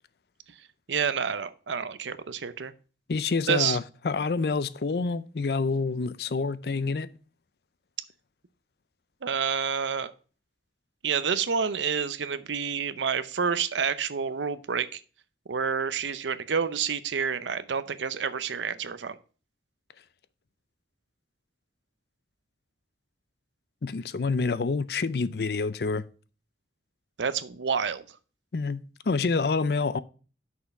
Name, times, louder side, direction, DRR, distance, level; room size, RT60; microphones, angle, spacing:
voice 1, 0.9-2.7 3.5-3.8 9.2-10.1 11.0-15.0 15.5-19.1 27.2-28.0, right 6 dB, 90° right, 0.6 m, -28 dB
voice 2, 3.1-7.1 23.8-26.0 28.5-28.8 29.1-30.0, left 4 dB, 60° left, 0.5 m, -27 dB
6.3 x 5.6 x 5.8 m
head